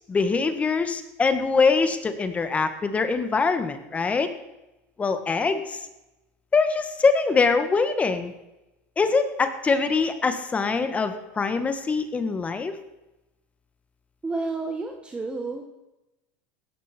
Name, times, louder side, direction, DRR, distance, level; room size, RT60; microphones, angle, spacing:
voice 1, 0.1-4.3 5.0-5.8 6.5-8.3 9.0-12.7, left 4 dB, 20° left, 9 dB, 1.6 m, -23 dB
voice 2, 14.2-15.7, right 3 dB, 15° right, 3 dB, 1.7 m, -30 dB
16.5 x 13.0 x 4.4 m, 0.99 s
supercardioid pair, 120°, 7 cm